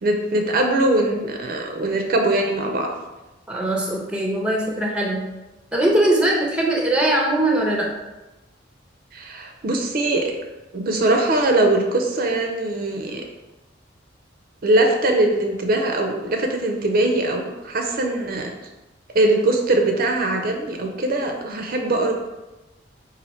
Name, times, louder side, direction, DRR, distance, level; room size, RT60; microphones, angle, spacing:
voice 1, 0.0-2.9 9.1-10.3 10.7-13.2 14.6-18.5 19.1-22.1, right 2 dB, 50° right, 3 dB, 0.5 m, -21 dB
voice 2, 3.5-5.3 5.7-7.9, right 1 dB, 5° right, -1 dB, 0.6 m, -21 dB
4.3 x 2.6 x 4.1 m, 1.1 s
head